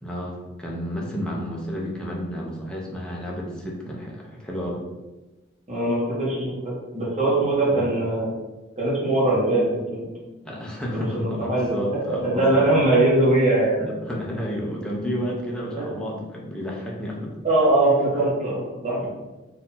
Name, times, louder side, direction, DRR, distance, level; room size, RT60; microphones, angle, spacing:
voice 1, 0.0-4.8 7.7-7.9 10.4-12.8 13.8-17.4, equal, 5° left, -3 dB, 0.8 m, -31 dB
voice 2, 5.7-8.3 8.7-10.0 10.9-13.8 15.7-15.8 17.4-19.0, right 2 dB, 35° right, -7 dB, 1.3 m, -21 dB
4.1 x 2.8 x 4.1 m, 1.1 s
head